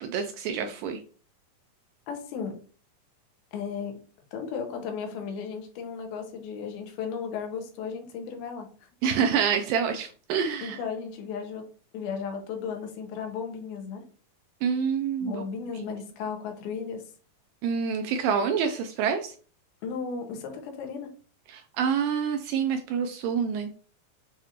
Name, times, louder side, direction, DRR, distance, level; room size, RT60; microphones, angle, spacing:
voice 1, 0.0-1.0 9.0-10.8 14.6-15.4 15.8-15.9 17.6-19.3 21.5-23.7, right 7 dB, 85° right, 6 dB, 2.0 m, -27 dB
voice 2, 2.1-2.6 3.5-4.0 4.3-8.7 10.6-14.0 15.2-17.0 19.8-21.1, left 6 dB, 85° left, 4 dB, 2.7 m, -35 dB
7.3 x 2.4 x 2.8 m, 0.39 s
omnidirectional pair, 4.2 m